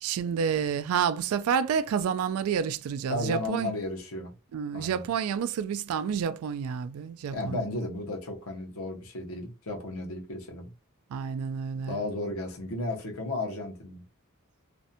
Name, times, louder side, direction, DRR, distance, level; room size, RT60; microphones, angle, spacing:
voice 1, 0.0-3.7 4.5-7.7 11.1-12.0, right 7 dB, 80° right, 0.3 m, -29 dB
voice 2, 3.1-4.3 4.7-5.0 7.3-10.7 11.9-14.0, left 2 dB, 80° left, 0.8 m, -34 dB
2.5 x 2.1 x 2.7 m
head